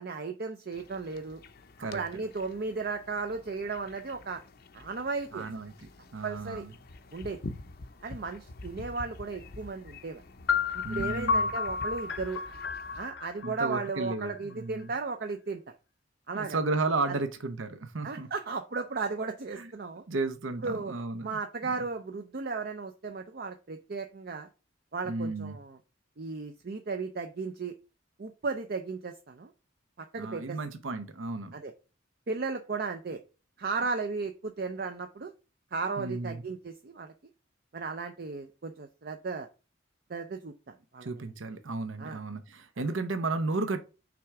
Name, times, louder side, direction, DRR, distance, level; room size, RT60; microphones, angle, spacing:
voice 1, 0.0-1.4 1.9-4.4 4.7-5.5 6.2-6.6 7.1-7.4 8.0-10.2 10.7-12.4 13.0-15.8 16.3-16.6 17.1-17.2 18.0-20.0 20.6-20.9 21.2-24.5 24.9-25.8 26.2-27.7 28.2-29.5 30.0-30.6 31.5-31.7 32.3-33.2 33.6-35.3 35.7-37.1 37.7-39.5 40.1-41.1 42.0-42.2, right 4 dB, 50° right, 0.5 m, -35 dB
sound 1, 0.7-13.1, left 2 dB, 50° left, 0.6 m, -47 dB
voice 2, 1.8-2.2 5.3-6.7 10.8-11.5 13.4-14.9 16.3-18.3 19.6-19.7 20.1-21.8 25.0-25.6 30.1-31.6 36.0-36.4 41.0-43.8, right 3 dB, 85° right, 0.8 m, -34 dB
sound 2, 10.5-14.3, left 5 dB, 75° left, 0.8 m, -31 dB
6.0 x 3.4 x 4.8 m
head